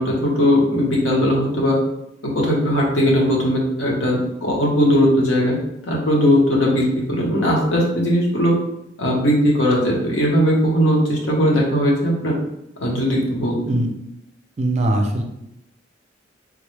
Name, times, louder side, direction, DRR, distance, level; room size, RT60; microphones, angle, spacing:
voice 1, 0.0-1.8 2.2-5.6 5.8-8.5 9.0-12.3 12.8-13.8, equal, 75° left, -3 dB, 1.0 m, -18 dB
voice 2, 14.6-15.2, right 1 dB, 35° right, 2 dB, 0.4 m, -20 dB
3.7 x 2.1 x 3.1 m, 0.80 s
head